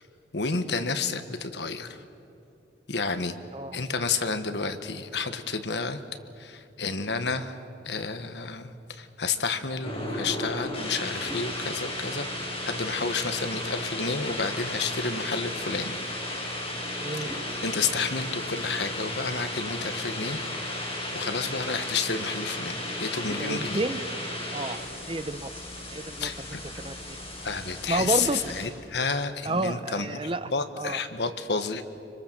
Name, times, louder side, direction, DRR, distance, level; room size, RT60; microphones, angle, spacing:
voice 1, 0.3-2.0 2.9-3.4 3.7-6.0 6.4-7.6 7.8-16.0 17.4-20.4 20.7-23.8 26.2-26.6 27.4-30.2 30.5-31.8, left 4 dB, 75° left, 9 dB, 1.5 m, -30 dB
sound 1, 9.8-28.7, left 1 dB, 35° left, 6.9 m, -34 dB
voice 2, 23.4-24.0 24.5-24.8 25.1-25.5 25.9-26.3 26.7-27.2 27.9-28.4 29.4-30.5 30.8-31.0, right 2 dB, 30° right, 12 dB, 0.8 m, -30 dB
25.5 x 25.0 x 7.5 m, 2.7 s
head